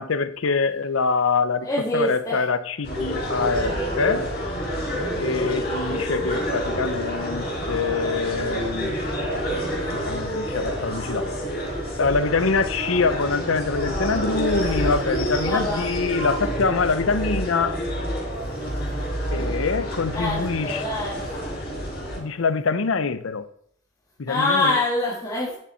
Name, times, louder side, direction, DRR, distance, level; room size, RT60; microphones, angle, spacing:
voice 1, 0.0-4.3 5.2-9.0 9.9-11.3 12.0-17.7 19.3-20.9 22.2-23.4 24.2-24.8, left 4 dB, 75° left, 0.7 m, -25 dB
voice 2, 1.6-2.4 15.4-15.8 20.1-21.2 24.3-25.5, left 2 dB, 20° left, 1.8 m, -25 dB
sound 1, 2.8-22.2, equal, 50° left, 4.8 m, -28 dB
9.7 x 7.2 x 4.4 m
head